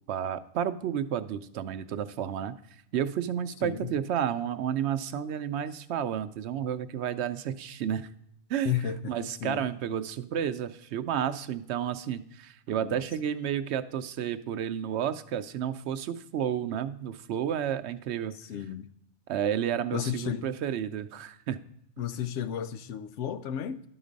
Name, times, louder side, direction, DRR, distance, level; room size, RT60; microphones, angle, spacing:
voice 1, 0.1-2.5 2.9-8.1 8.5-8.7 9.1-18.3 19.3-21.6, right 9 dB, 75° right, 0.8 m, -31 dB
voice 2, 3.6-3.9 8.6-9.7 12.8-13.0 18.4-18.9 19.9-20.4 22.0-23.8, left 9 dB, 90° left, 0.9 m, -33 dB
12.0 x 3.9 x 5.1 m
omnidirectional pair, 1.2 m